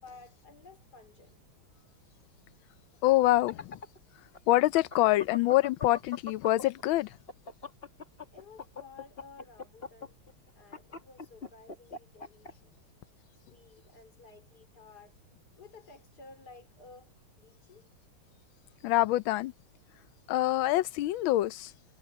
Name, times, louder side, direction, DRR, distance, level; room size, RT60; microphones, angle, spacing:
voice 1, 0.0-1.4 8.3-15.2 15.5-17.9, left 4 dB, 45° left, 4.5 m, -54 dB
voice 2, 3.0-3.8 4.5-7.2 18.8-19.5 20.3-21.7, left 16 dB, 75° left, 1.3 m, -25 dB
sound 1, 3.2-6.8 7.1-12.5, left 4 dB, 30° left, 2.3 m, -42 dB
omnidirectional pair, 2.4 m